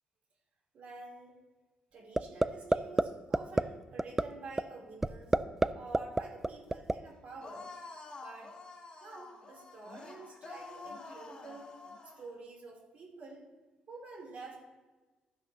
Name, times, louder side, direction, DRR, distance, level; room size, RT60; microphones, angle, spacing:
voice 1, 0.7-1.4 1.9-5.4 5.7-7.7 8.2-8.5 9.0-11.8 12.0-13.4 13.9-14.6, right 3 dB, 50° right, -3 dB, 3.8 m, -49 dB
sound 1, 2.2-2.5 2.7-3.0 3.3-3.6 4.0-4.2 4.6-4.7 5.0-5.7 5.9-6.9, right 2 dB, 10° right, 0.3 m, -25 dB
sound 2, 7.4-12.3, left 3 dB, 30° left, 1.3 m, -48 dB
12.5 x 11.5 x 3.0 m, 1.2 s
cardioid pair, 145°, 3 cm